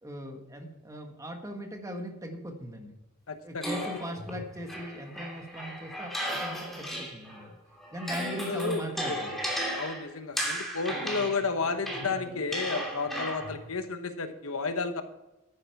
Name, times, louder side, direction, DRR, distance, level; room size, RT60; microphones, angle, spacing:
voice 1, 0.0-3.0 3.4-7.6 7.9-9.4, equal, 15° right, 4 dB, 1.5 m, -39 dB
voice 2, 3.3-3.7 8.4-9.2 9.7-15.0, left 4 dB, 80° left, 9 dB, 1.1 m, -32 dB
sound 1, 3.6-7.4 7.8-13.6, equal, ahead, 2.8 m, -35 dB
12.0 x 10.0 x 4.6 m, 0.98 s
head